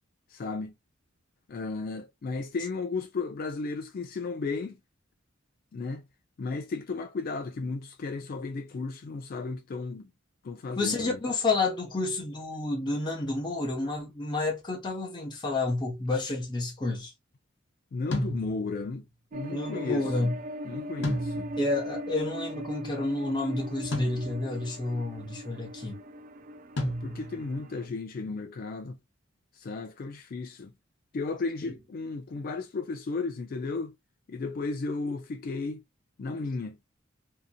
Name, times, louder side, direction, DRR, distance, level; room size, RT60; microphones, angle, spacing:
voice 1, 0.3-0.7 1.5-4.8 5.7-6.0 6.4-10.1 10.4-11.2 17.9-19.0 19.3-20.3 20.6-21.5 26.8-29.0 29.5-30.7 31.1-33.9 34.3-35.8 36.2-36.8, left 4 dB, 45° left, 0.3 m, -34 dB
voice 2, 10.8-17.1 19.5-20.3 21.6-26.0 31.6-31.7, left 2 dB, 25° left, 0.8 m, -30 dB
sound 1, 18.1-18.9 21.0-21.8 23.9-24.7 26.8-27.5, left 1 dB, 65° left, 0.9 m, -32 dB
sound 2, 19.3-27.9, equal, 45° right, 0.4 m, -39 dB
2.7 x 2.5 x 2.4 m
head